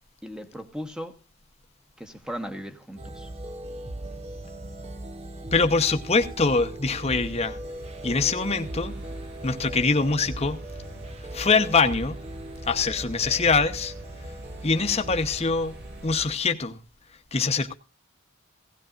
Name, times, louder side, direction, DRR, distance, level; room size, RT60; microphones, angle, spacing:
voice 1, 0.2-1.2 2.0-3.3, equal, 5° right, 1.3 m, -37 dB
sound 1, 3.0-16.4, right 1 dB, 30° right, 0.8 m, -38 dB
voice 2, 5.5-7.6 8.0-8.9 9.4-10.6 11.3-12.2 12.7-13.9 14.6-15.7 16.0-16.8 17.3-17.7, left 4 dB, 30° left, 1.0 m, -23 dB
sound 2, 6.9-16.1, equal, 55° right, 5.3 m, -46 dB
17.0 x 16.5 x 2.5 m
head